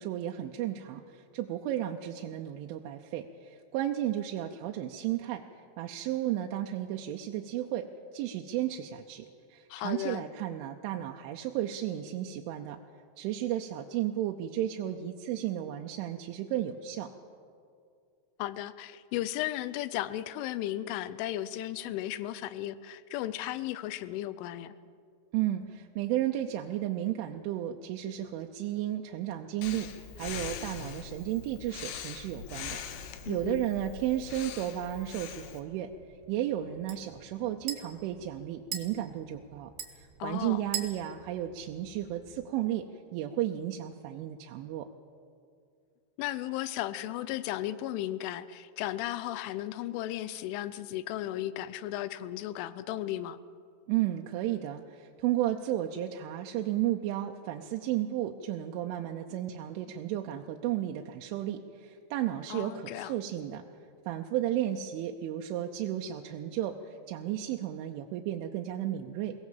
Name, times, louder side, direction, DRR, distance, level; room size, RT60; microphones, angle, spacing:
voice 1, 0.0-5.4 5.8-7.9 8.1-12.8 13.2-17.1 25.3-35.9 36.3-42.9 43.1-44.9 53.9-63.7 64.1-69.4, right 12 dB, 85° right, 3 dB, 3.2 m, -33 dB
voice 2, 9.7-10.2 18.4-24.7 33.3-33.7 40.2-40.6 46.2-53.4 62.5-63.1, left 14 dB, 85° left, 15 dB, 3.2 m, -35 dB
Breathing, 29.6-35.6, left 8 dB, 70° left, 2.8 m, -42 dB
sound 1, 34.7-42.5, right 9 dB, 65° right, 3.6 m, -44 dB
22.5 x 18.0 x 7.4 m, 2.3 s
omnidirectional pair, 5.5 m